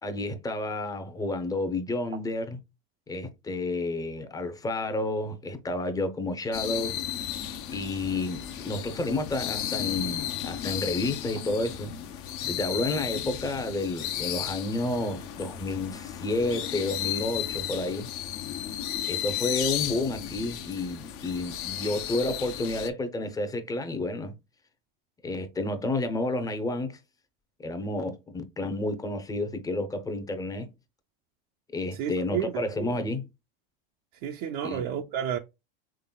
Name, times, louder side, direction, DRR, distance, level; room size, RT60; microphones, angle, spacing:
voice 1, 0.0-2.6 3.1-7.0 7.7-11.9 12.4-18.1 19.1-24.3 25.2-27.0 27.6-30.7 31.7-33.2 34.6-34.8, left 2 dB, 10° left, 0.6 m, -30 dB
sound 1, 6.5-22.9, left 11 dB, 50° left, 0.6 m, -34 dB
voice 2, 31.9-32.6 34.2-35.4, right 9 dB, 55° right, 0.5 m, -31 dB
3.8 x 3.4 x 2.2 m
supercardioid pair, 115°, 29 cm